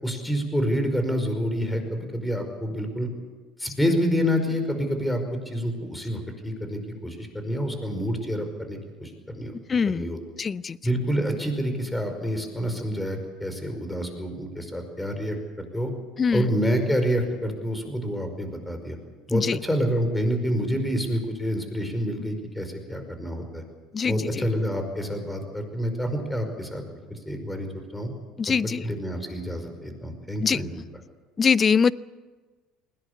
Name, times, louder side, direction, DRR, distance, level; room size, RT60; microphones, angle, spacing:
voice 1, 0.0-3.1 3.6-10.2 10.8-15.4 15.7-15.9 16.3-19.0 19.3-23.6 24.0-26.8 27.1-28.1 28.8-30.7, equal, 10° left, 6 dB, 5.2 m, -28 dB
voice 2, 9.7-10.1 10.4-10.8 16.2-16.5 19.3-19.6 23.9-24.2 28.4-28.8 30.4-30.6 31.4-31.9, left 6 dB, 30° left, 19 dB, 0.6 m, -22 dB
20.5 x 18.0 x 8.5 m, 1.3 s
supercardioid pair, 85°, 0 cm